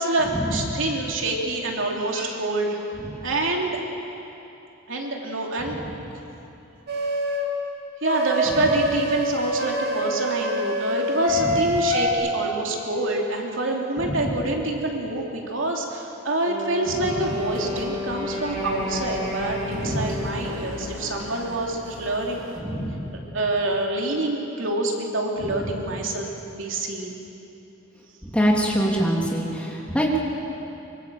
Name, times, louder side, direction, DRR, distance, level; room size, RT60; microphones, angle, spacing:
voice 1, 0.0-2.8 3.2-3.7 4.9-5.8 8.0-22.4 23.3-27.2, right 2 dB, 70° right, 0 dB, 3.1 m, -26 dB
sound 1, 6.9-7.5 8.0-12.1, equal, 55° right, 3.0 m, -25 dB
voice 2, 14.0-14.3 16.9-17.2 19.7-20.2 22.6-23.1 25.4-25.8 28.2-30.2, equal, 5° left, -2 dB, 3.1 m, -25 dB
Wind instrument woodwind instrument, 16.4-21.5, left 1 dB, 30° right, 3.6 m, -32 dB
Chatter / Car passing by / Motorcycle, 17.2-22.6, right 1 dB, 90° right, 2.8 m, -38 dB
25.0 x 24.0 x 7.7 m, 2.9 s
head